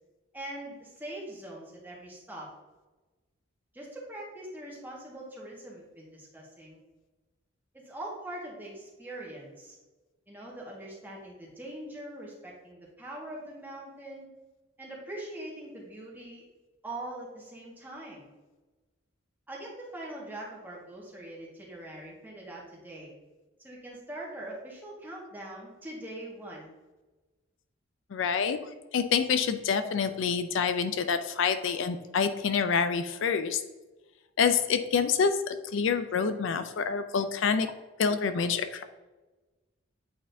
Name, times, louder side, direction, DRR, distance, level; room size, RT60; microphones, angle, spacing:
voice 1, 0.3-2.5 3.7-6.8 7.8-9.8 10.3-14.3 14.8-16.4 16.8-18.3 19.5-23.1 23.6-26.7, right 1 dB, 10° right, -4 dB, 1.5 m, -42 dB
voice 2, 28.1-28.6 28.9-33.6 34.4-37.7 38.0-38.8, left 6 dB, 65° left, 10 dB, 0.4 m, -27 dB
8.4 x 4.3 x 2.6 m, 1.2 s
head